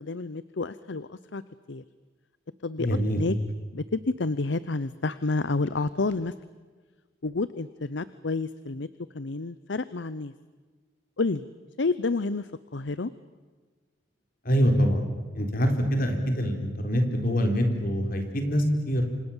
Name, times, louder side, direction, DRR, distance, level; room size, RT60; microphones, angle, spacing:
voice 1, 0.0-1.4 1.7-1.8 2.6-2.9 3.1-3.4 3.7-6.3 7.2-8.9 9.1-10.3 11.2-11.5 11.8-13.1, left 3 dB, 70° left, 16 dB, 0.7 m, -29 dB
voice 2, 2.8-3.2 14.5-15.0 15.3-19.1, equal, 50° left, 5 dB, 4.1 m, -24 dB
28.5 x 26.0 x 7.3 m, 1.4 s
head